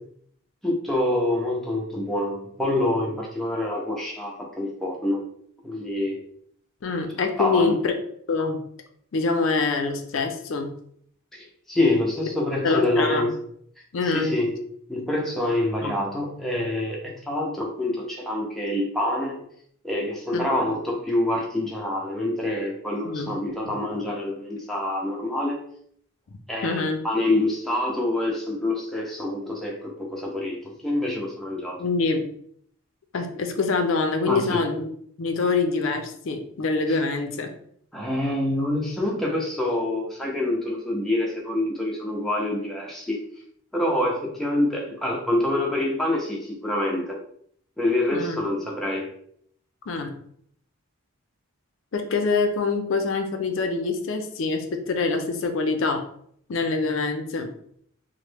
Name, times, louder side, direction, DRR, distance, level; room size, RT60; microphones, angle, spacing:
voice 1, 0.6-5.2 5.6-6.2 7.4-7.8 11.3-13.3 14.0-14.5 14.9-19.4 19.8-25.6 26.5-31.8 34.3-34.6 36.9-37.0 37.9-43.2 43.7-47.2 47.8-49.1, left 1 dB, ahead, -3 dB, 0.5 m, -26 dB
voice 2, 6.8-7.9 8.3-8.6 9.1-10.7 12.6-13.3 13.9-14.3 15.8-15.9 20.3-20.4 23.0-23.4 23.6-23.7 26.3-27.0 31.8-32.3 33.1-34.9 35.2-37.5 48.1-48.4 49.9-50.1 51.9-56.0 56.5-57.5, left 4 dB, 60° left, 5 dB, 0.4 m, -25 dB
3.0 x 2.1 x 3.3 m, 0.65 s
head